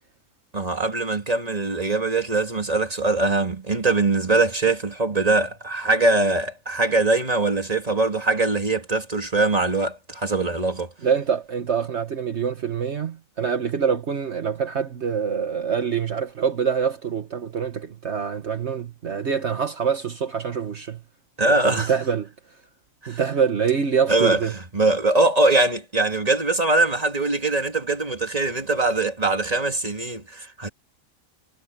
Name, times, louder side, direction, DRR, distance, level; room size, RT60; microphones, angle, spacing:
voice 1, 0.5-10.9 21.4-21.9 23.0-23.2 24.1-30.7, right 2 dB, 30° right, 2.7 m, -22 dB
voice 2, 11.0-21.0 21.5-22.3 23.1-24.5, right 7 dB, 60° right, 1.6 m, -25 dB
omnidirectional pair, 1.4 m